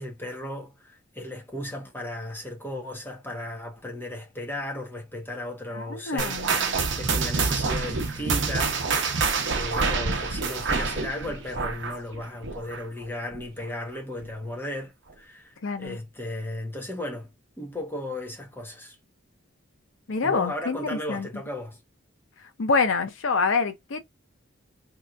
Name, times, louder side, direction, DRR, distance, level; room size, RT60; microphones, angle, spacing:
voice 1, 0.0-17.3 17.6-19.0 20.2-21.8, left 1 dB, 10° left, 1.0 m, -35 dB
voice 2, 5.7-6.8 15.6-16.0 20.1-21.3 22.6-24.0, left 4 dB, 75° left, 0.7 m, -26 dB
sound 1, 6.2-13.0 13.3-13.6 14.2-14.3 15.1-15.2, right 4 dB, 65° right, 0.8 m, -27 dB
3.3 x 2.9 x 2.5 m
head